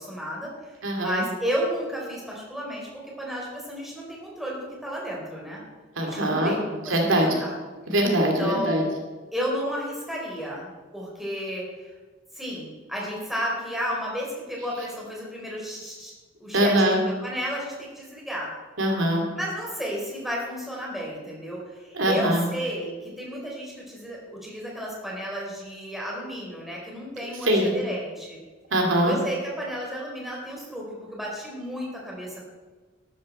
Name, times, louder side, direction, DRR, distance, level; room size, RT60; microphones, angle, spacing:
voice 1, 0.0-0.7 1.0-2.9 3.2-5.6 6.0-7.5 8.2-8.9 9.3-11.9 12.3-16.1 16.4-18.5 19.4-28.4 29.0-32.5, equal, ahead, -3 dB, 4.1 m, -32 dB
voice 2, 0.8-1.2 6.0-6.5 6.9-7.3 7.9-8.8 16.5-17.0 18.8-19.3 21.9-22.5 27.4-27.7 28.7-29.1, right 1 dB, 75° right, 1 dB, 2.6 m, -22 dB
13.0 x 12.5 x 4.3 m, 1.3 s
head